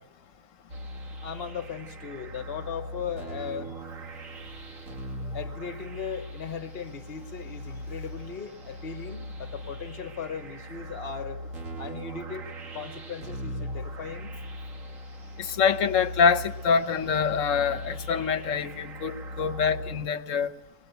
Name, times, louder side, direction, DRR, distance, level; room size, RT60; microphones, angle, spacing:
sound 1, 0.7-20.1, equal, 65° right, 2.2 m, -39 dB
voice 1, 1.2-3.8 5.3-11.4 11.8-14.4, left 7 dB, 45° left, 9 dB, 1.3 m, -37 dB
voice 2, 15.4-20.5, left 6 dB, 65° left, 11 dB, 1.3 m, -25 dB
23.5 x 19.5 x 8.1 m, 1.0 s
omnidirectional pair, 1.5 m